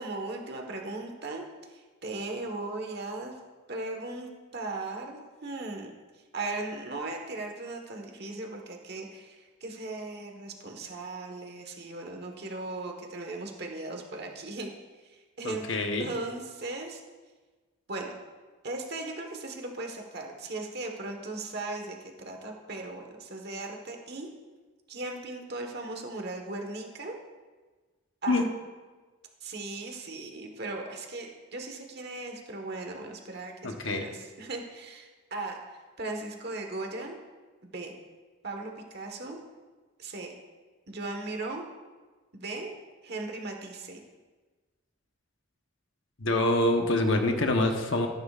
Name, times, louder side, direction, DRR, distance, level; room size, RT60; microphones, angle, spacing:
voice 1, 0.0-1.4 1.7-3.3 3.7-5.9 6.3-14.7 15.4-15.7 16.0-17.0 17.9-18.1 18.6-24.3 24.9-27.1 28.2-28.4 29.4-35.6 36.0-37.2 37.6-37.9 38.4-39.4 40.0-40.3 40.9-41.6 42.3-42.7 43.0-44.0, right 2 dB, 50° right, 2 dB, 1.4 m, -37 dB
voice 2, 15.4-16.1 28.3-28.4 33.6-34.1 46.2-48.1, left 2 dB, 65° left, 4 dB, 1.1 m, -26 dB
13.5 x 11.0 x 2.5 m, 1.4 s
head